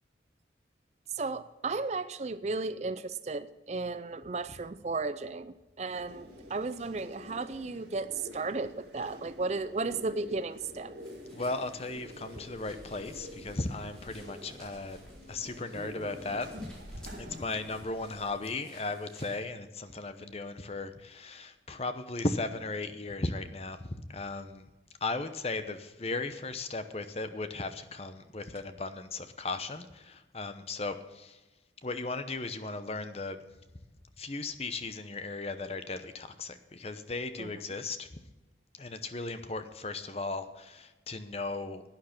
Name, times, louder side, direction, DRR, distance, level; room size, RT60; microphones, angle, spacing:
voice 1, 1.1-10.9 37.4-37.5, right 3 dB, 35° right, 14 dB, 0.4 m, -34 dB
sound 1, 5.9-18.3, equal, 65° right, 2.2 m, -47 dB
sound 2, 11.0-19.4, right 1 dB, 5° left, 4.3 m, -59 dB
voice 2, 11.3-15.0 15.3-16.7 17.2-24.7 25.0-31.4 31.8-33.4 34.2-38.1 38.7-41.8, left 3 dB, 35° left, 10 dB, 0.8 m, -36 dB
11.5 x 9.4 x 5.9 m, 1.0 s
head